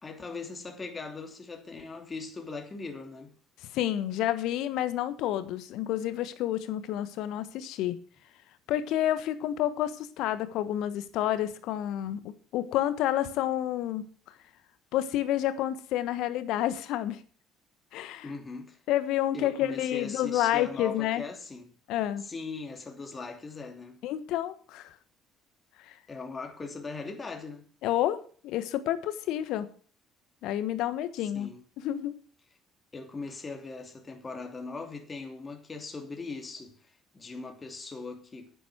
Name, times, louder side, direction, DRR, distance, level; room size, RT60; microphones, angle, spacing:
voice 1, 0.0-3.3 18.2-18.8 19.3-21.7 22.2-24.0 26.1-27.6 31.3-31.6 32.9-36.8 37.1-38.5, left 4 dB, 30° left, 2.9 m, -40 dB
voice 2, 3.7-8.0 8.7-14.1 14.9-17.2 17.9-18.3 18.9-21.2 21.9-22.2 24.0-24.9 25.9-26.0 27.8-29.7 30.4-31.5 31.8-32.2, left 12 dB, 65° left, 1.2 m, -29 dB
9.9 x 9.8 x 6.1 m
hypercardioid pair, 55°, 0 cm